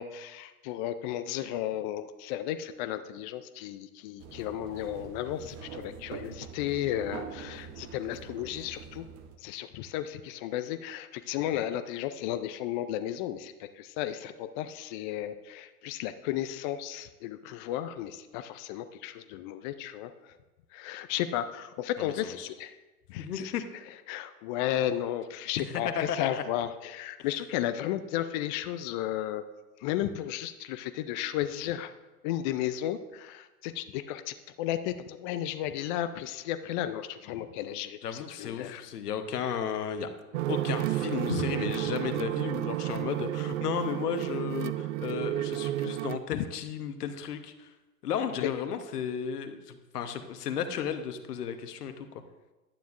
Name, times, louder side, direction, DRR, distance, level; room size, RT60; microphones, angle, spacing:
voice 1, 0.0-9.1 9.4-20.4 20.7-22.8 23.1-23.5 24.1-29.4 29.8-31.9 32.2-38.8 41.3-41.4 46.3-46.4 48.4-48.5, left 12 dB, 35° left, 10 dB, 0.4 m, -34 dB
sound 1, 4.2-9.4, right 6 dB, 35° right, 0.9 m, -44 dB
voice 2, 22.0-22.5 23.2-23.6 25.7-26.4 38.0-40.1 40.5-47.7 48.0-52.1, left 8 dB, 75° left, 8 dB, 1.1 m, -34 dB
sound 2, 40.3-46.2, right 15 dB, 55° right, 0.5 m, -31 dB
11.5 x 9.1 x 2.5 m, 1.1 s
hypercardioid pair, 105°, 47 cm